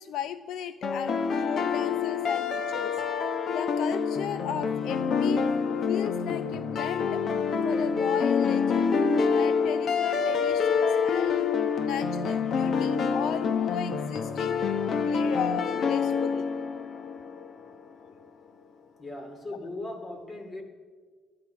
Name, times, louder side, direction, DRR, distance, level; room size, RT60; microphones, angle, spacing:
voice 1, 0.0-3.0 3.5-5.5 5.9-7.2 7.6-8.9 9.3-11.5 11.8-16.5, left 9 dB, 75° left, 12 dB, 0.5 m, -36 dB
sound 1, 0.8-17.7, left 5 dB, 50° left, 1.1 m, -27 dB
voice 2, 19.0-20.6, left 2 dB, 30° left, 5 dB, 2.8 m, -38 dB
20.0 x 12.0 x 5.9 m, 1.5 s
cardioid pair, 130°, 0 cm